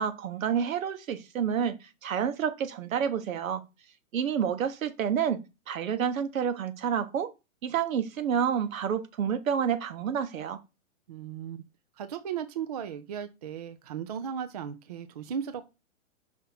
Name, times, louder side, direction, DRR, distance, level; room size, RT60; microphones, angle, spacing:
voice 1, 0.0-3.6 4.1-7.3 7.6-10.6, right 8 dB, 75° right, 1.2 m, -29 dB
voice 2, 11.1-11.6 12.0-15.7, right 8 dB, 30° right, 0.4 m, -36 dB
5.7 x 3.7 x 5.7 m
hypercardioid pair, 160°, 41 cm